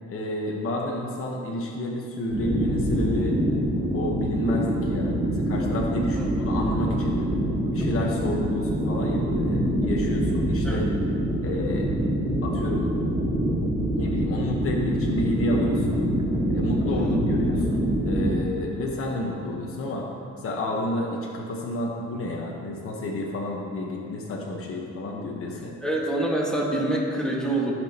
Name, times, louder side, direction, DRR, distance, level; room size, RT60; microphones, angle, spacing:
voice 1, 0.1-3.3 3.9-7.2 7.7-10.9 11.4-11.9 12.4-12.9 13.9-16.0 16.5-20.0 20.4-25.8, left 1 dB, 45° left, -2 dB, 1.2 m, -30 dB
sound 1, 2.3-18.4, equal, 15° right, 1.3 m, -25 dB
voice 2, 6.1-6.5 10.6-10.8 16.9-17.2 25.8-27.7, right 1 dB, ahead, -3 dB, 1.6 m, -26 dB
14.0 x 6.2 x 2.9 m, 2.5 s
cardioid pair, 90°, 30 cm